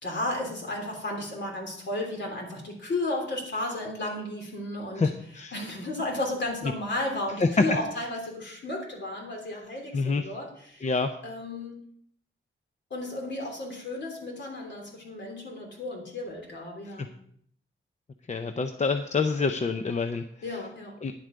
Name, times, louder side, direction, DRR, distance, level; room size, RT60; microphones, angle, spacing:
voice 1, 0.0-5.1 5.5-10.9 11.2-11.8 12.9-17.1 20.4-21.0, left 1 dB, 60° left, 0 dB, 3.3 m, -33 dB
voice 2, 18.3-20.2 21.0-21.1, left 4 dB, 35° left, 7 dB, 0.6 m, -27 dB
10.5 x 7.9 x 5.1 m, 0.66 s
wide cardioid pair, 140°, 21 cm